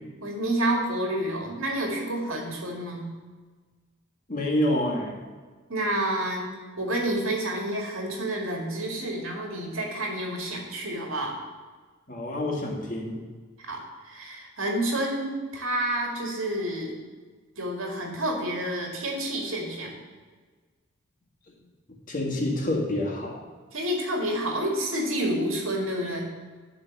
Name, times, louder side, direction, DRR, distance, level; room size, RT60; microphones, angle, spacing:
voice 1, 0.2-3.1 5.7-6.5 6.8-11.3 13.6-17.0 17.6-20.0 23.7-26.3, right 1 dB, 80° right, 0 dB, 2.1 m, -29 dB
voice 2, 4.3-5.2 12.1-13.2 22.1-23.4, left 1 dB, 40° left, -1 dB, 1.7 m, -27 dB
11.0 x 3.8 x 7.0 m, 1.4 s
head